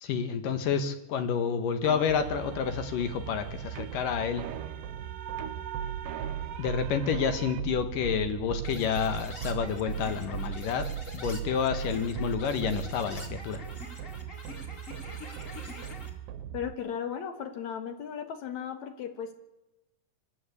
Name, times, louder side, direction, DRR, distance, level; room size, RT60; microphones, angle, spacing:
voice 1, 0.0-4.4 6.6-10.9 11.1-13.6, left 7 dB, 80° left, 9 dB, 3.1 m, -29 dB
sound 1, 1.8-7.6, right 9 dB, 65° right, 1.5 m, -42 dB
sound 2, 2.1-16.7, right 10 dB, 85° right, 2.6 m, -38 dB
sound 3, 8.6-16.1, left 2 dB, 25° left, 2.7 m, -45 dB
voice 2, 16.5-19.3, left 8 dB, 60° left, 7 dB, 2.7 m, -36 dB
25.5 x 12.0 x 8.5 m, 0.99 s
omnidirectional pair, 3.8 m